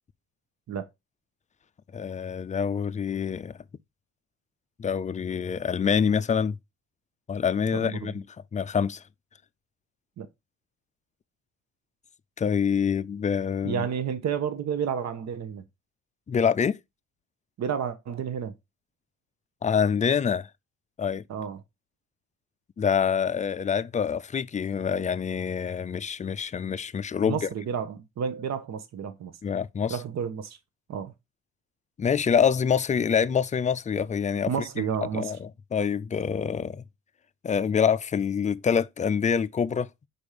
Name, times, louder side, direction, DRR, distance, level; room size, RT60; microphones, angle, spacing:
voice 1, 1.9-3.5 4.8-6.6 7.3-8.2 8.5-9.0 12.4-13.9 16.3-16.8 19.6-20.5 21.0-21.2 22.8-27.5 29.4-30.0 32.0-36.8 37.4-39.9, left 7 dB, 25° left, 0.4 m, -26 dB
voice 2, 7.7-8.1 10.2-10.3 13.6-15.6 17.6-18.5 21.3-21.6 27.2-29.3 29.9-30.6 30.9-31.1 34.5-35.3, right 7 dB, 60° right, 1.1 m, -31 dB
5.2 x 4.5 x 4.9 m
cardioid pair, 90°, 30 cm